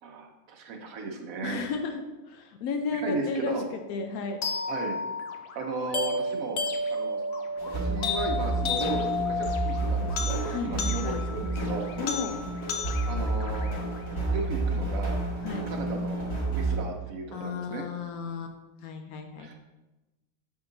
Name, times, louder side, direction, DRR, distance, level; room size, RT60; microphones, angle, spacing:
voice 1, 0.0-1.6 2.9-3.6 4.7-5.0 5.5-6.6 6.9-7.2 7.7-11.9 13.1-13.7 14.3-15.2 15.7-17.9 19.4-19.5, right 4 dB, 70° right, 2 dB, 1.2 m, -35 dB
voice 2, 1.4-2.0 2.3-4.4 10.4-11.2 12.0-12.4 15.4-15.7 17.3-18.5 18.8-19.5, left 5 dB, 85° left, 5 dB, 1.1 m, -33 dB
sound 1, 4.4-14.4, left 3 dB, 60° left, 0.7 m, -33 dB
sound 2, 7.6-16.8, right 2 dB, 20° left, 1.7 m, -30 dB
7.0 x 3.7 x 3.9 m, 1.1 s
omnidirectional pair, 1.5 m